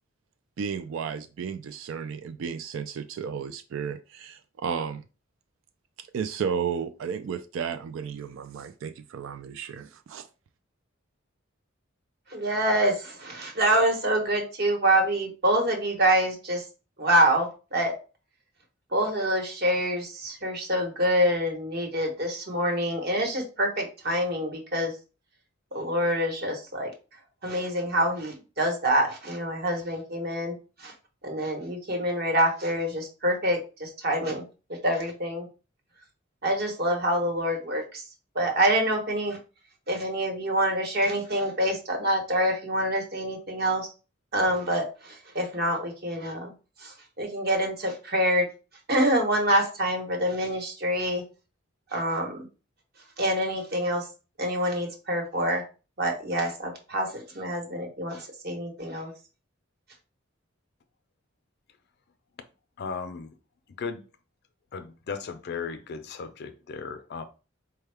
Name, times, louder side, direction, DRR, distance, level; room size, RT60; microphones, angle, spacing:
voice 1, 0.6-5.0 6.0-10.3, right 7 dB, 70° right, 0.3 m, -33 dB
voice 2, 12.3-16.6 17.0-18.0 18.9-24.9 25.7-26.9 27.4-30.5 30.8-30.9 31.2-34.4 34.8-35.5 36.4-38.0 38.3-39.4 39.9-43.9 44.3-46.5 46.8-48.5 48.9-51.2 51.9-52.5 53.2-54.1 54.4-55.6 56.0-59.1, right 1 dB, 50° right, 1.1 m, -26 dB
voice 3, 62.8-63.4 63.8-64.0 64.7-67.3, left 5 dB, 55° left, 0.4 m, -36 dB
4.4 x 2.2 x 3.3 m
head